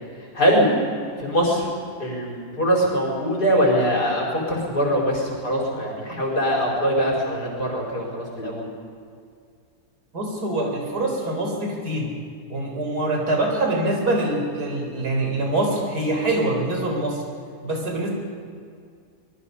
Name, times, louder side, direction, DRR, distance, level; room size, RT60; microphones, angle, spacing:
voice 1, 0.3-0.7 1.2-1.7 2.0-8.7, equal, 90° left, -2 dB, 5.5 m, -22 dB
voice 2, 10.1-12.1 12.5-17.2 17.6-18.1, right 2 dB, 90° right, 1 dB, 4.7 m, -24 dB
25.0 x 20.5 x 5.6 m, 2.2 s
omnidirectional pair, 1.7 m